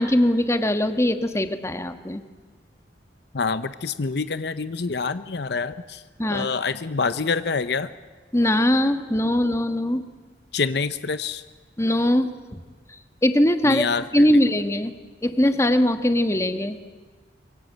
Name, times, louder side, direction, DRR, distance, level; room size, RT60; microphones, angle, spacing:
voice 1, 0.0-2.2 6.2-6.5 8.3-10.1 11.8-12.6 13.2-13.8 14.1-14.9 15.2-16.8, left 1 dB, 15° left, 8 dB, 1.4 m, -21 dB
voice 2, 3.3-6.0 6.3-7.9 10.5-11.4 13.6-14.4, left 4 dB, 65° left, 13 dB, 0.8 m, -26 dB
25.5 x 23.5 x 8.0 m, 1.4 s
head